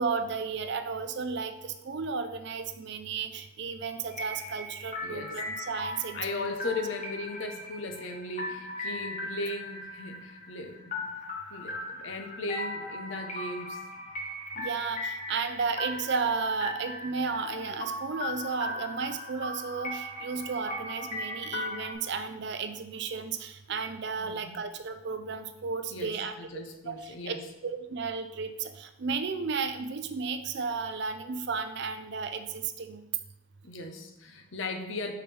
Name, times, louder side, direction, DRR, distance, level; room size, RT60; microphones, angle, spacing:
voice 1, 0.0-6.5 14.6-27.3 27.6-33.1, right 5 dB, 55° right, 9 dB, 0.4 m, -33 dB
sound 1, 4.1-21.9, left 1 dB, 35° left, 1.0 m, -38 dB
voice 2, 5.0-5.3 6.1-11.1 11.5-13.8 24.2-24.6 25.9-27.5 33.6-35.2, left 2 dB, 65° left, 5 dB, 0.7 m, -37 dB
6.0 x 4.8 x 3.3 m, 0.89 s
head